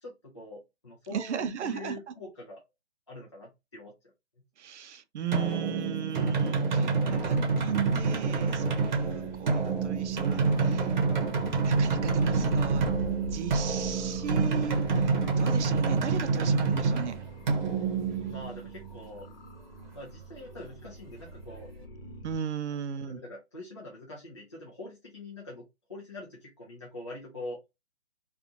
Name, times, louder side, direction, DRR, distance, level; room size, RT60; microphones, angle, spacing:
voice 1, 0.0-2.6 3.1-3.9 17.7-17.9 18.3-19.3 19.9-21.7 22.8-27.6, left 2 dB, 25° left, 0.4 m, -44 dB
voice 2, 1.1-2.0 4.6-11.0 11.6-12.9 13.3-17.2 22.2-23.2, right 8 dB, 85° right, 0.5 m, -36 dB
sound 1, 5.3-18.9, right 4 dB, 40° right, 0.8 m, -27 dB
sound 2, 7.1-22.4, left 1 dB, 55° left, 1.2 m, -44 dB
2.5 x 2.3 x 2.6 m
hypercardioid pair, 170°, 34 cm